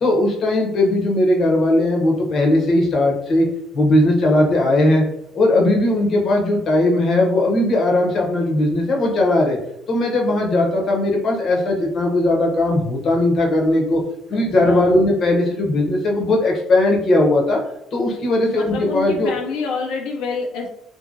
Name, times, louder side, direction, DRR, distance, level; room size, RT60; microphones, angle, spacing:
voice 1, 0.0-3.5 3.7-5.0 5.3-9.6 9.9-14.0 14.3-17.6 17.9-19.3, left 1 dB, 45° left, 0 dB, 0.7 m, -18 dB
voice 2, 14.3-14.9 18.5-20.8, left 4 dB, 85° left, 0 dB, 0.4 m, -27 dB
2.6 x 2.6 x 2.5 m, 0.78 s
cardioid pair, 135°, 0 cm